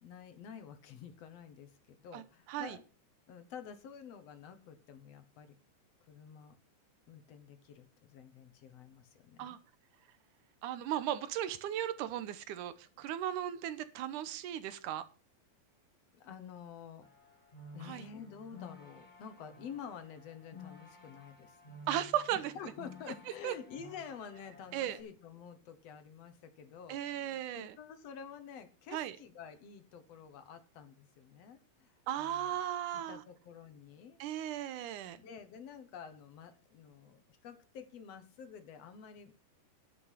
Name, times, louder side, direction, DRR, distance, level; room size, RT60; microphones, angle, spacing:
voice 1, 0.0-2.8 3.3-5.6 6.1-6.6 7.1-9.6 16.1-17.1 17.7-21.6 22.3-32.6 32.9-34.2 35.2-39.4, left 7 dB, 60° left, 10 dB, 2.0 m, -49 dB
voice 2, 10.6-15.0 17.8-18.1 21.9-22.5 23.4-23.5 24.7-25.0 26.9-27.8 28.9-29.2 32.1-33.2 34.2-35.2, right 11 dB, 75° right, 13 dB, 2.3 m, -36 dB
sound 1, 17.0-25.0, left 3 dB, 15° left, 1.7 m, -54 dB
10.5 x 8.2 x 5.7 m, 0.36 s
omnidirectional pair, 3.9 m